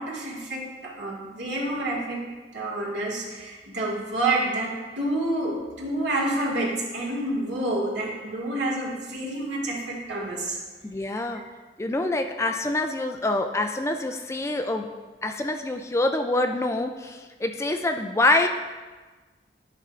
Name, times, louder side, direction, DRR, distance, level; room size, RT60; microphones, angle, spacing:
voice 1, 0.0-2.2 2.5-10.6, right 2 dB, 85° right, -4 dB, 1.9 m, -28 dB
voice 2, 10.8-11.4 11.8-14.9 15.2-18.5, left 2 dB, 15° left, 6 dB, 0.3 m, -25 dB
11.0 x 5.5 x 2.5 m, 1.3 s
head